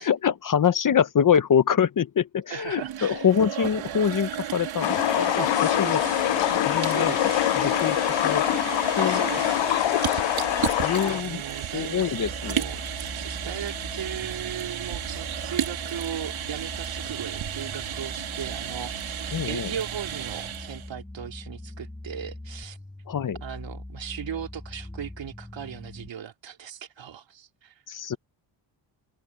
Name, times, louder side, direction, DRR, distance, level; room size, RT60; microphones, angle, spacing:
voice 1, 0.0-6.0 6.5-7.1 7.6-8.0 8.2-8.4 9.0-9.2 10.8-11.4 11.7-12.7 19.3-19.7 23.1-23.4 27.9-28.2, left 8 dB, 40° left, 1.1 m, -24 dB
voice 2, 2.5-3.3 5.4-6.2 6.8-7.5 9.0-10.3 11.0-12.0 12.4-22.8 23.4-27.7, right 9 dB, 65° right, 3.6 m, -37 dB
sound 1, 2.6-20.9, right 10 dB, 85° right, 4.1 m, -33 dB
sound 2, 4.8-11.2, left 15 dB, 70° left, 0.6 m, -24 dB
sound 3, 12.2-26.1, left 1 dB, 5° left, 1.0 m, -41 dB
open air
cardioid pair, 125°, 47 cm